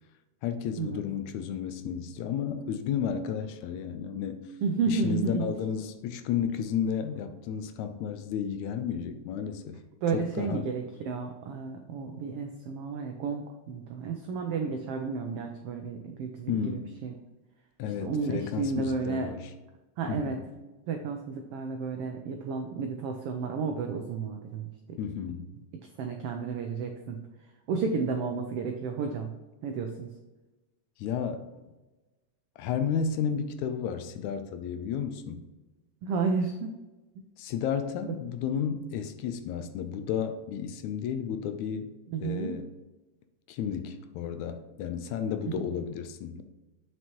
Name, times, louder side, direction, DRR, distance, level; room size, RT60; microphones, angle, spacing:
voice 1, 0.4-4.5 4.9-9.8 10.1-10.7 16.5-16.9 17.8-19.5 20.1-20.5 25.0-25.5 31.0-31.5 32.6-35.4 37.4-41.9 42.2-42.7 43.5-46.4, left 7 dB, 80° left, 9 dB, 2.0 m, -32 dB
voice 2, 4.6-5.5 10.0-17.1 18.0-19.3 20.0-20.4 20.9-25.0 26.0-27.2 27.7-29.3 29.6-30.1 36.0-36.7 42.1-42.6 45.5-45.7, right 5 dB, 90° right, 4 dB, 1.3 m, -32 dB
7.9 x 6.2 x 3.0 m, 1.1 s
omnidirectional pair, 3.4 m